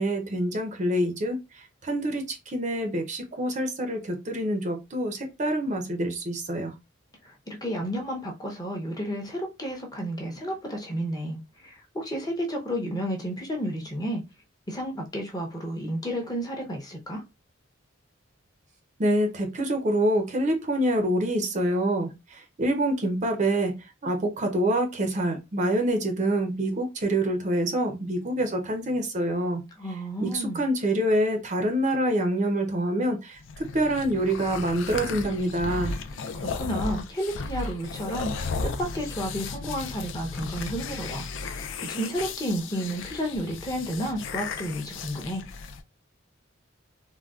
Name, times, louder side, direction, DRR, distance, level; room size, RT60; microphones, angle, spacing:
voice 1, 0.0-6.7 19.0-29.6 30.2-33.4 33.7-36.0, right 1 dB, 35° right, 0.5 m, -26 dB
voice 2, 7.2-14.2 14.7-17.2 29.8-30.6 36.3-45.4, equal, 20° left, 0.6 m, -32 dB
sound 1, 33.4-45.8, left 4 dB, 65° left, 0.4 m, -35 dB
3.7 x 2.1 x 2.3 m
head